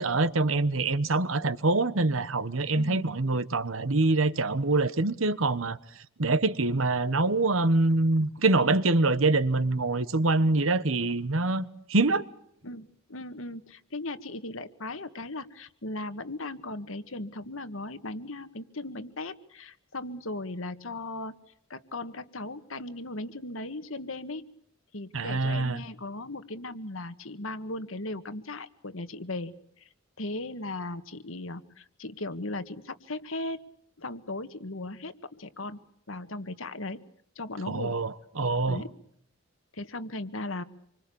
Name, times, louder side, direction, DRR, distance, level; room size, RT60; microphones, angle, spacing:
voice 1, 0.0-5.8 6.2-12.2 25.1-25.8 37.7-38.8, right 2 dB, 75° right, 1.3 m, -25 dB
voice 2, 2.7-3.0 12.6-21.4 21.7-24.5 24.9-29.9 30.2-33.6 34.0-35.8 36.1-37.0 37.4-37.9 38.7-38.9 39.7-40.6, left 2 dB, 75° left, 1.8 m, -37 dB
27.5 x 25.0 x 7.1 m
head